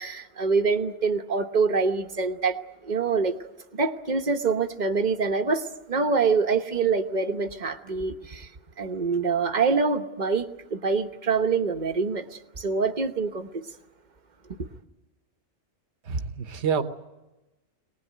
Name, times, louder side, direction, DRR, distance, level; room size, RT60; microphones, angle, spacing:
voice 1, 0.0-2.6 2.8-3.3 3.7-8.5 8.8-13.6 14.6-14.7, right 4 dB, 35° right, 7 dB, 1.2 m, -25 dB
voice 2, 16.0-16.8, right 6 dB, 60° right, 9 dB, 1.4 m, -27 dB
23.5 x 19.5 x 9.3 m, 1.0 s
omnidirectional pair, 1.3 m